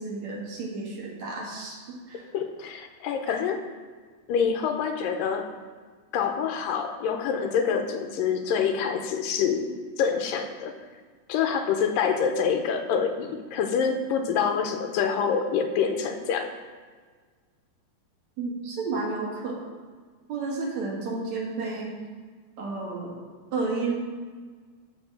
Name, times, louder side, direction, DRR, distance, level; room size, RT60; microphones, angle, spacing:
voice 1, 0.0-2.3 3.3-3.4 18.4-19.6 20.3-21.9 22.6-23.2 23.5-23.9, right 3 dB, 60° right, -3 dB, 2.8 m, -31 dB
voice 2, 2.3-3.6 4.3-5.5 6.1-9.7 10.0-10.8 11.3-16.5, left 6 dB, 85° left, 5 dB, 2.5 m, -26 dB
12.5 x 4.5 x 6.5 m, 1.5 s
omnidirectional pair, 3.9 m